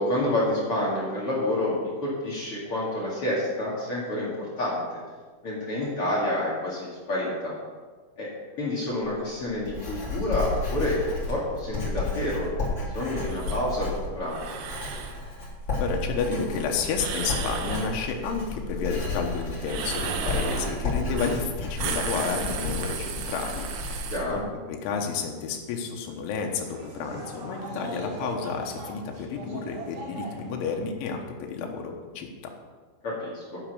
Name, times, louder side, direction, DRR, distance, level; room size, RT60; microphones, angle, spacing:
voice 1, 0.0-5.0 5.4-7.5 8.2-8.3 8.6-14.4 21.1-21.3 24.1-24.4 33.0-33.6, left 1 dB, 45° left, -5 dB, 2.0 m, -29 dB
Writing, 9.0-24.4, left 2 dB, 25° left, 3.5 m, -32 dB
sound 1, 13.3-13.6 14.2-15.2 16.9-18.0 19.6-20.8 21.2-21.4 21.7-24.2, right 7 dB, 75° right, 2.9 m, -34 dB
voice 2, 15.8-24.4 24.7-32.5, left 5 dB, 80° left, 2 dB, 3.5 m, -31 dB
sound 2, 26.6-30.8, right 1 dB, 50° right, 2.6 m, -40 dB
9.5 x 7.9 x 6.7 m, 1.4 s
omnidirectional pair, 5.5 m